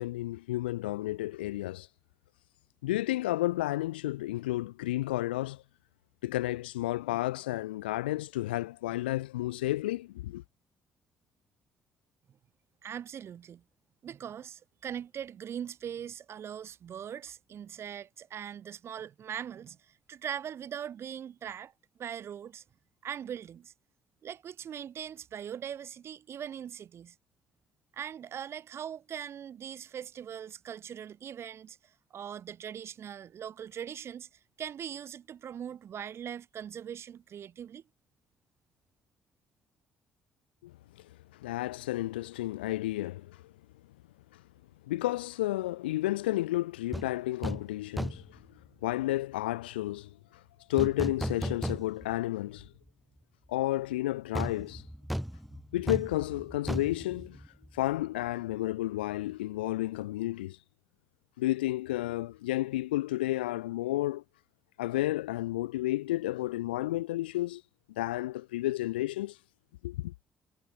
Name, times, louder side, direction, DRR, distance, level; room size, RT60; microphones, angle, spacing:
voice 1, 0.0-1.9 2.8-5.6 6.2-10.4 40.6-40.7 41.3-43.4 44.3-44.4 44.9-48.4 48.8-50.4 50.7-52.7 53.5-54.9 55.7-57.4 57.7-60.6 61.4-64.2 64.8-67.6 68.0-69.4 69.8-70.1, left 16 dB, 90° left, 0.4 m, -31 dB
voice 2, 12.8-13.6 14.0-21.7 22.0-22.6 23.0-23.7 24.2-27.1 27.9-31.8 32.1-34.3 34.6-37.8, right 9 dB, 55° right, 1.1 m, -41 dB
sound 1, 46.9-47.1 47.4-47.7 48.0-48.4 50.8-52.2 52.6-52.7 54.3-58.0 58.3-58.4, equal, ahead, 0.4 m, -35 dB
hypercardioid pair, 55°, 5 cm